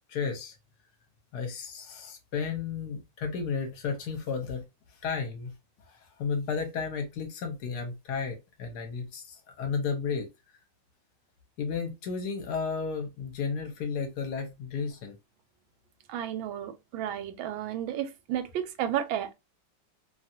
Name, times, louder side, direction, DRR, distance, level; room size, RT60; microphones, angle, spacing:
voice 1, 0.1-0.5 1.3-4.7 5.0-5.5 5.9-10.3 11.6-15.2, left 5 dB, 65° left, 1.2 m, -33 dB
voice 2, 16.1-19.3, right 10 dB, 90° right, 1.4 m, -32 dB
3.0 x 2.3 x 2.6 m
omnidirectional pair, 2.1 m